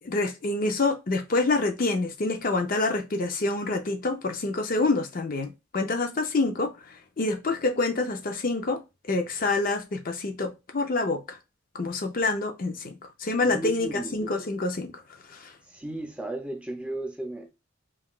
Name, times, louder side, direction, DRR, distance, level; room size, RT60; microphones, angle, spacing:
voice 1, 0.0-6.7 7.2-8.8 9.1-11.4 11.7-14.9 15.3-15.5, left 3 dB, 45° left, 0.5 m, -27 dB
voice 2, 13.4-14.2 15.7-17.5, right 1 dB, 5° right, 0.4 m, -35 dB
5.6 x 2.4 x 2.3 m
head